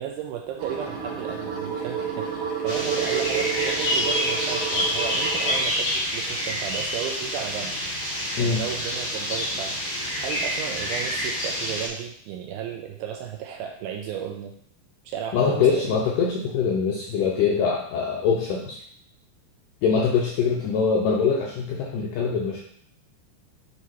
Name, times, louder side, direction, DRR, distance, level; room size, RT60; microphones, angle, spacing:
voice 1, 0.0-7.7 8.4-9.8 10.2-14.5 15.1-15.9, right 9 dB, 80° right, 2 dB, 2.2 m, -34 dB
sound 1, 0.6-5.6, right 7 dB, 65° right, 2.3 m, -30 dB
sound 2, 2.7-11.9, equal, 65° left, 1.2 m, -27 dB
voice 2, 15.3-18.8 19.8-22.6, left 5 dB, 80° left, -2 dB, 1.9 m, -23 dB
8.1 x 2.9 x 4.6 m, 0.64 s
omnidirectional pair, 4.7 m